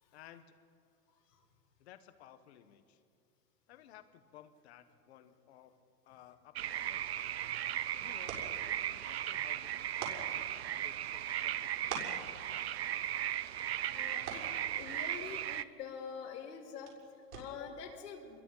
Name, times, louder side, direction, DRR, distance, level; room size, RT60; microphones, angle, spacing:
voice 1, 0.1-0.6 1.8-3.0 3.7-5.7 6.0-7.1 8.0-12.9, left 11 dB, 40° left, 10 dB, 1.5 m, -58 dB
sound 1, 6.6-15.6, right 12 dB, 45° right, 0.4 m, -37 dB
sound 2, 7.1-17.8, right 5 dB, 65° right, 6.7 m, -49 dB
voice 2, 13.5-18.4, left 6 dB, 75° left, -2 dB, 4.4 m, -47 dB
27.5 x 22.5 x 5.7 m, 2.4 s
supercardioid pair, 175°, 49 cm